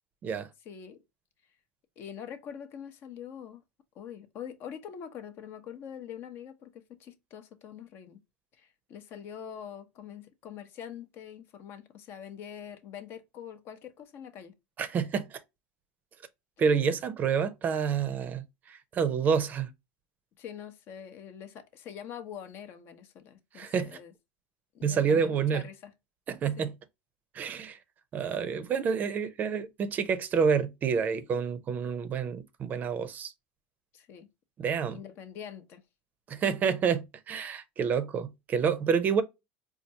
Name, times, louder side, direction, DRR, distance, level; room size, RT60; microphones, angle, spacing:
voice 1, 0.7-1.0 2.0-3.6 3.9-8.2 8.6-14.5 16.6-16.8 20.4-24.1 24.7-25.9 26.6-26.7 33.9-34.3 34.9-35.8, left 8 dB, 50° left, 0.7 m, -44 dB
voice 2, 14.8-15.4 16.6-19.7 23.5-24.0 24.8-25.6 26.3-26.7 27.3-27.8 28.1-33.3 34.6-35.0 36.3-39.2, right 6 dB, 35° right, 0.5 m, -28 dB
4.3 x 2.3 x 2.7 m
supercardioid pair, 110°, 5 cm